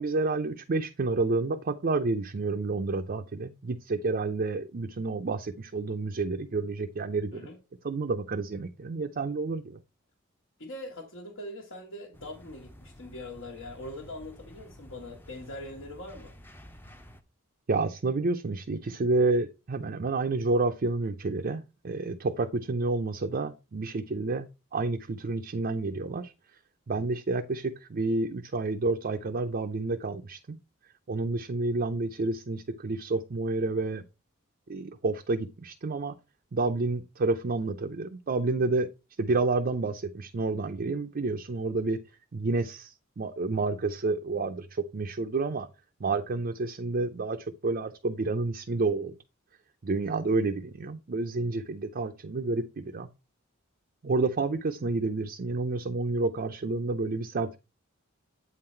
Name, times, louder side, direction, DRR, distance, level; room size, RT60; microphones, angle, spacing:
voice 1, 0.0-7.4 7.8-9.8 17.7-26.3 26.9-30.6 31.1-34.0 34.7-36.2 36.5-38.9 39.2-42.0 42.3-45.7 46.0-49.2 49.8-53.1 54.0-57.6, right 3 dB, 45° right, 0.5 m, -29 dB
voice 2, 10.6-16.3, left 1 dB, 70° left, 1.3 m, -42 dB
sound 1, 12.1-17.2, equal, 10° left, 0.6 m, -51 dB
8.3 x 3.9 x 4.3 m
head